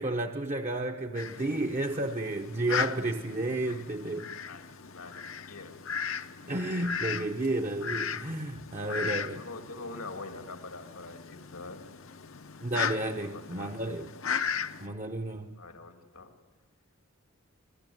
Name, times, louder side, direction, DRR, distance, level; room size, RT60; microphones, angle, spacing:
voice 1, 0.0-4.3 6.5-9.4 12.6-14.1 14.8-15.5, right 2 dB, 30° right, 0.9 m, -32 dB
Fowl, 1.1-14.9, left 7 dB, 60° left, 0.8 m, -37 dB
voice 2, 4.5-5.7 8.8-11.9 13.2-14.0 15.6-16.3, left 3 dB, 85° left, 2.4 m, -45 dB
26.5 x 20.5 x 9.4 m
head